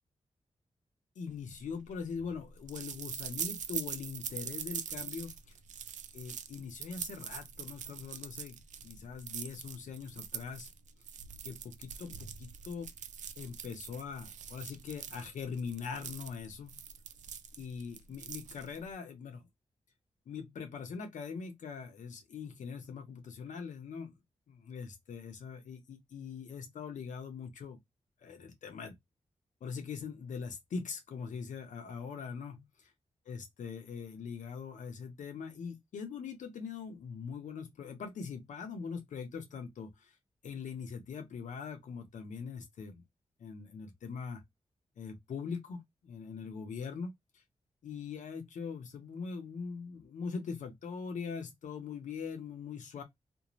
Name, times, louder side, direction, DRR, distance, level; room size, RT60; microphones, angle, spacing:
voice 1, 1.2-5.3 6.1-10.7 11.4-12.9 13.4-16.8 17.6-19.5 20.3-24.1 24.5-27.8 28.2-28.9 29.6-32.7 33.3-40.1 40.4-43.0 43.4-44.4 45.0-47.4 47.8-53.0, left 5 dB, 85° left, 0.7 m, -42 dB
sound 1, 1.5-18.9, right 8 dB, 80° right, 0.4 m, -43 dB
2.6 x 2.1 x 3.0 m
cardioid pair, 60°, 13 cm